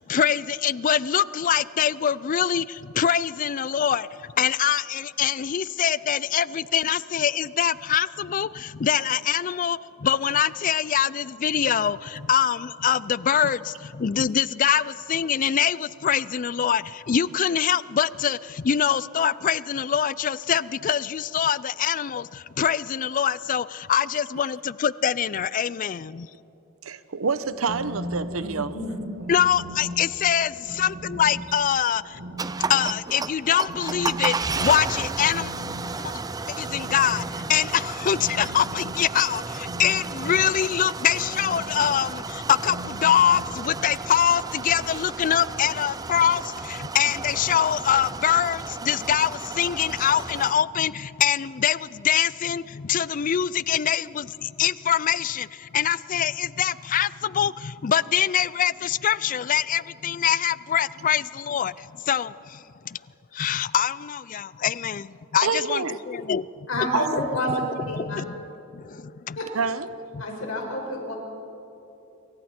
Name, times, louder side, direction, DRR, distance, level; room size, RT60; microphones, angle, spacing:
voice 1, 0.0-26.3 29.3-32.2 32.7-35.5 36.0-36.1 36.5-63.0 63.3-66.4 67.1-67.6 67.9-68.4 68.7-69.4 70.1-70.2, left 9 dB, 40° left, 19 dB, 0.4 m, -24 dB
voice 2, 26.8-28.8 65.4-66.0 66.9-67.0 69.5-69.9, right 5 dB, 85° right, 13 dB, 0.8 m, -27 dB
sound 1, 27.4-43.5, equal, 70° right, 2.2 m, -39 dB
voice 3, 28.3-29.0 66.7-67.1 67.3-67.5 67.9-68.2 69.4-69.5 70.2-71.1, left 1 dB, 85° left, 0 dB, 5.3 m, -29 dB
sound 2, 32.4-50.5, right 4 dB, 20° right, 0.5 m, -33 dB
27.0 x 24.0 x 4.4 m, 3.0 s
head